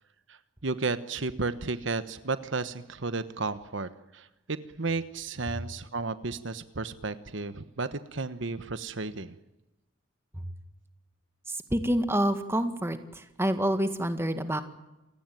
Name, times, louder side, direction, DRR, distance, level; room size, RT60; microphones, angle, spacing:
voice 1, 0.3-9.4, right 3 dB, 65° right, 12 dB, 1.1 m, -33 dB
voice 2, 11.5-14.6, right 1 dB, 15° right, 8 dB, 1.9 m, -28 dB
28.5 x 17.5 x 9.3 m, 0.97 s
head